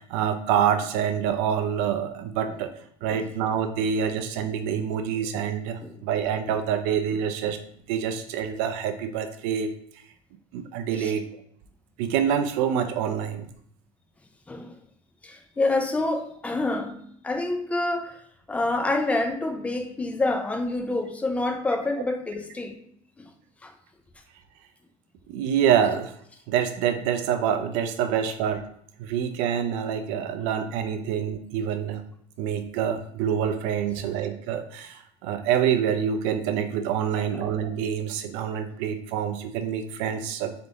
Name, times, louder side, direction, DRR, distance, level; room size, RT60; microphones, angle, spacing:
voice 1, 0.0-2.7 3.0-7.6 7.9-9.7 10.5-11.3 12.0-13.5 25.3-26.1 26.5-28.7 29.0-32.0 32.4-40.7, right 8 dB, 80° right, 0.4 m, -26 dB
voice 2, 15.2-17.0 17.2-18.2 18.5-22.8 23.2-23.3 23.6-23.7 37.2-37.3, left 2 dB, 10° left, 0.4 m, -27 dB
3.8 x 3.6 x 3.5 m
cardioid pair, 160°, 13 cm